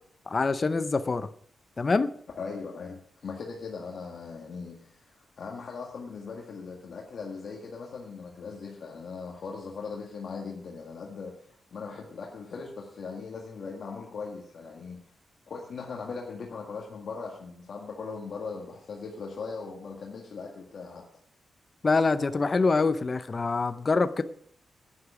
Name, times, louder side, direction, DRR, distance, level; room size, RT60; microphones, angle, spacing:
voice 1, 0.3-1.3 1.8-2.1 21.8-24.2, left 3 dB, 30° left, 11 dB, 0.6 m, -25 dB
voice 2, 2.4-15.0 15.5-21.0, left 4 dB, 60° left, -1 dB, 1.8 m, -39 dB
11.0 x 9.9 x 5.0 m, 0.63 s
wide cardioid pair, 125°, 0 cm